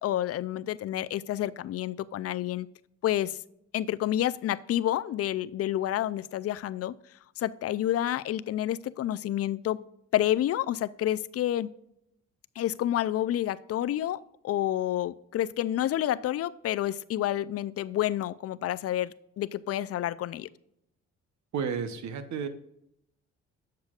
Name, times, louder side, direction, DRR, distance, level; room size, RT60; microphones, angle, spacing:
voice 1, 0.0-2.7 3.0-3.3 3.7-6.9 7.4-9.8 10.1-11.7 12.6-20.5, left 12 dB, 55° left, 0.4 m, -29 dB
voice 2, 21.5-22.5, right 6 dB, 65° right, 0.9 m, -32 dB
7.9 x 6.7 x 2.4 m
cardioid pair, 90°, 30 cm